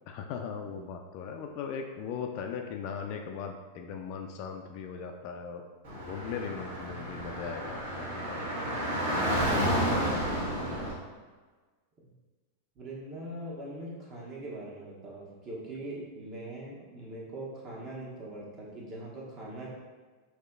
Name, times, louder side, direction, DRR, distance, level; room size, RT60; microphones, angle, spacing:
voice 1, 0.1-5.6 6.0-8.5 9.1-10.9, left 6 dB, 45° left, 3 dB, 0.3 m, -39 dB
Car / Traffic noise roadway noise, 5.8-10.9, equal, 55° right, 1.4 m, -31 dB
voice 2, 12.7-19.7, right 1 dB, 35° right, -4 dB, 1.1 m, -41 dB
5.5 x 2.8 x 2.3 m, 1.4 s
figure-of-eight pair, 90°, 0 cm